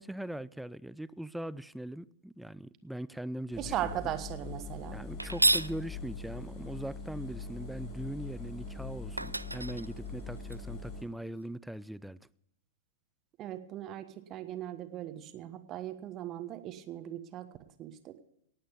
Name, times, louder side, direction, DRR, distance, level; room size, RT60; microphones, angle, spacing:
voice 1, 0.0-3.7 4.9-12.3, right 1 dB, ahead, 0.4 m, -41 dB
Engine, 3.5-11.0, left 3 dB, 25° left, 6.0 m, -42 dB
voice 2, 3.6-5.0 13.4-17.5 17.8-18.2, right 12 dB, 30° right, 1.2 m, -38 dB
sound 1, 5.2-5.8 8.7-8.8 9.2-10.6, right 1 dB, 85° right, 0.4 m, -30 dB
18.0 x 8.8 x 5.3 m
figure-of-eight pair, 105°, 0 cm